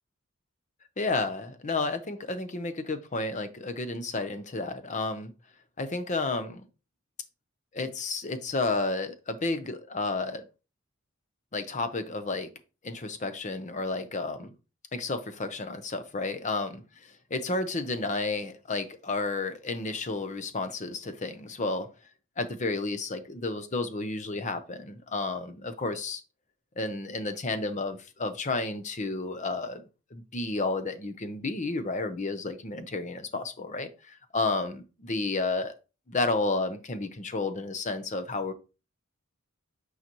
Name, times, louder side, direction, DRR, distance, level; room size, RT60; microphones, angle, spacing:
voice 1, 1.0-5.3 5.8-6.6 7.7-10.4 11.5-12.5 12.8-14.5 14.9-21.9 22.4-26.2 26.8-29.8 30.1-35.7 36.1-38.5, left 3 dB, 35° left, 0.8 m, -31 dB
8.8 x 4.0 x 3.0 m
head